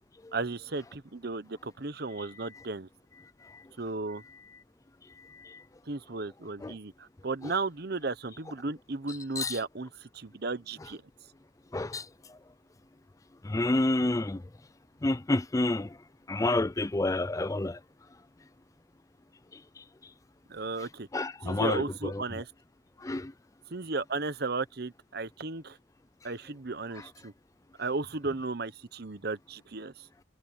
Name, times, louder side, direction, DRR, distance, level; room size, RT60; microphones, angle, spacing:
voice 1, 0.3-2.9 3.8-4.2 5.9-11.0 20.5-21.1 21.4-22.5 23.7-25.8 26.2-27.3 27.8-30.1, right 3 dB, 55° right, 1.0 m, -35 dB
voice 2, 5.2-5.6 6.6-6.8 7.4-7.5 9.1-9.6 11.7-12.4 13.4-14.4 15.0-16.0 16.3-17.8 19.5-19.8 21.1-22.2 23.0-23.3 27.0-27.1, left 2 dB, 15° left, 0.4 m, -30 dB
head